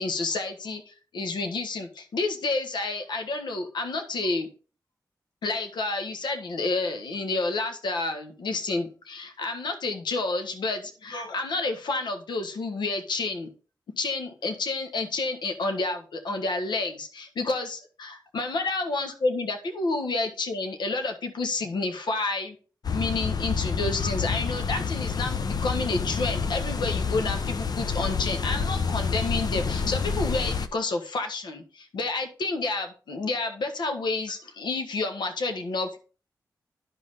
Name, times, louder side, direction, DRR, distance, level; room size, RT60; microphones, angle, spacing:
voice 1, 0.0-4.5 5.4-13.5 14.0-22.6 22.9-36.0, left 3 dB, 85° left, 5 dB, 1.5 m, -29 dB
sound 1, 22.8-30.7, left 5 dB, 60° left, 0.7 m, -28 dB
10.5 x 5.5 x 4.1 m, 0.37 s
cardioid pair, 50°, 8 cm